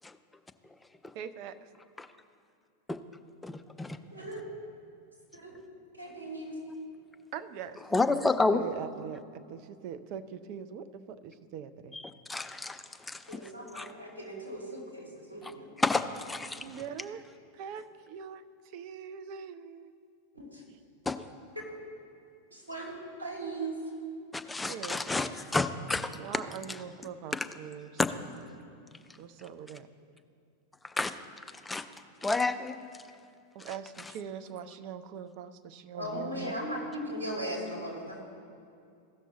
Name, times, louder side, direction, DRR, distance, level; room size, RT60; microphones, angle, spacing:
voice 1, 1.1-1.6 7.3-8.2 8.5-12.0 16.6-17.2 17.5-19.9 24.7-25.1 26.2-27.9 29.2-29.9 33.5-36.5, right 8 dB, 45° right, 11 dB, 0.5 m, -42 dB
voice 2, 3.4-4.0 7.9-8.6 11.9-13.4 13.7-13.9 15.4-15.5 15.8-16.8 21.1-21.2 24.3-26.2 26.7-26.8 27.3-27.5 28.0-28.1 30.8-31.2 31.6-31.8 32.2-32.8 33.6-33.7, left 3 dB, 10° left, 9 dB, 0.4 m, -30 dB
voice 3, 5.9-6.6 13.3-15.7 20.3-20.6 22.5-22.9 23.2-23.8 36.0-38.2, right 1 dB, 80° right, -3 dB, 2.4 m, -38 dB
15.5 x 6.1 x 4.0 m, 2.5 s
figure-of-eight pair, 90°, 0 cm